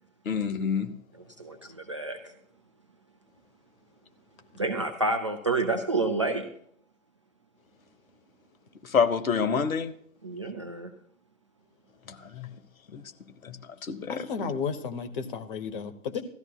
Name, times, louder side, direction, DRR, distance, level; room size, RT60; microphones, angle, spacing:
voice 1, 0.2-0.9 8.8-9.9 12.1-12.5 12.9-13.0 13.4-14.5, left 6 dB, 70° left, 1.1 m, -28 dB
voice 2, 1.4-2.3 4.6-6.5 10.2-10.9, right 3 dB, 25° right, 0.3 m, -29 dB
voice 3, 14.1-16.2, left 6 dB, 35° left, 1.1 m, -33 dB
17.0 x 13.5 x 2.3 m
figure-of-eight pair, 115°, 43 cm